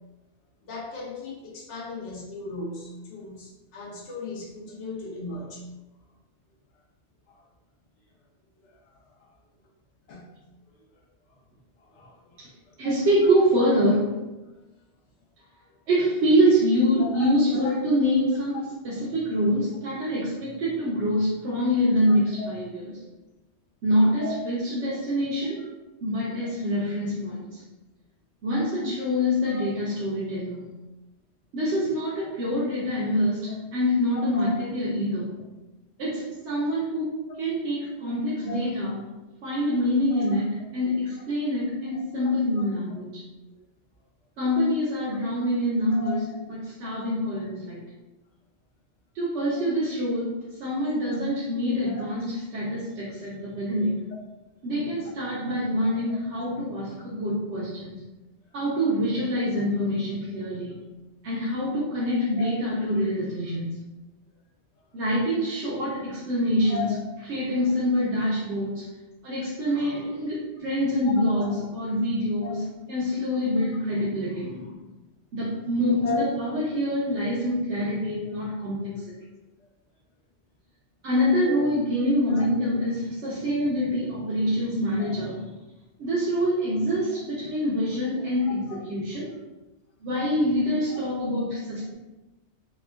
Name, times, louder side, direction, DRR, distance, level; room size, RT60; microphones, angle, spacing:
voice 1, 0.6-5.7 7.3-7.4 8.6-8.8 9.2-9.3 10.1-10.3 11.8-12.4 12.7-12.8 14.5-14.6 17.0-17.7 22.4-22.5 24.2-24.4 29.5-29.7 34.3-34.5 38.4-38.6 40.1-40.4 42.2-42.6 45.9-46.1 51.8-52.0 55.0-55.1 56.4-56.5 62.4-62.5 66.6-66.9 67.9-68.3 71.4-71.5 72.4-72.5 73.6-73.8 76.0-76.3 81.5-81.6 82.3-82.5 85.0-85.2 88.4-88.5 90.9-91.0, left 3 dB, 80° left, -4 dB, 1.1 m, -36 dB
voice 2, 12.8-14.1 15.9-18.6 18.8-22.9 23.8-25.6 26.0-27.6 28.4-30.7 31.5-35.4 36.0-37.1 37.4-39.0 39.4-43.2 44.4-47.8 49.1-54.0 54.6-58.0 58.5-60.8 61.2-63.7 64.9-66.9 67.3-68.8 69.2-72.6 72.9-74.8 75.3-78.9 81.0-85.4 86.0-89.3 90.0-91.9, equal, 75° right, -7 dB, 1.0 m, -25 dB
3.5 x 2.1 x 2.3 m, 1.0 s
omnidirectional pair, 1.2 m